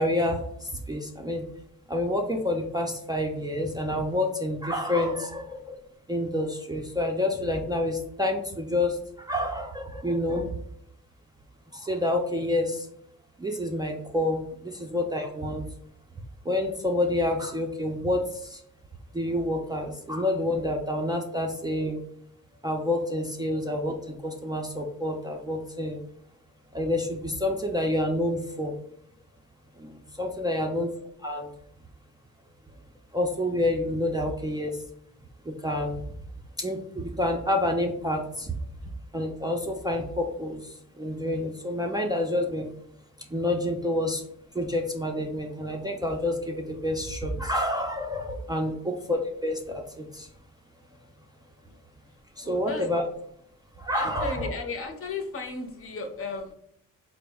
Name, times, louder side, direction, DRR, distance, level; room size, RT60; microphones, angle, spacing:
voice 1, 0.0-1.4 1.9-5.8 6.1-10.5 11.7-12.9 13.4-15.6 16.5-18.6 19.1-22.0 22.6-26.0 26.7-28.7 29.8-30.9 31.2-31.5 33.1-34.7 35.4-36.0 36.6-38.6 39.1-42.7 43.3-44.2 44.5-50.3 52.4-53.0 53.8-54.5, left 1 dB, 15° right, 1 dB, 0.4 m, -28 dB
voice 2, 52.4-53.0 53.9-56.5, left 4 dB, 45° left, 5 dB, 0.7 m, -35 dB
3.9 x 2.0 x 3.4 m, 0.71 s
cardioid pair, 90°, 32 cm